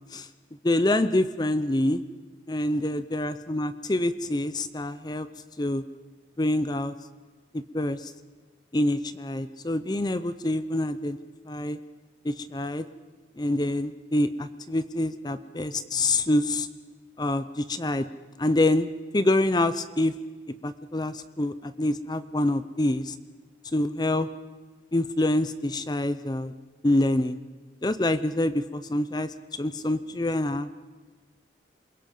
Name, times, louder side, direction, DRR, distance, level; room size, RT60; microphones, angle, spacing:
voice 1, 0.6-2.0 2.5-5.3 5.6-5.8 6.4-6.9 7.5-8.1 8.7-11.2 11.5-11.8 12.2-12.9 13.4-16.7 17.2-18.1 18.4-18.9 19.1-20.2 20.6-23.1 23.7-24.3 24.9-26.5 26.8-27.4 27.8-30.7, left 1 dB, 20° left, 13 dB, 0.6 m, -26 dB
28.0 x 22.0 x 5.4 m, 1.3 s
head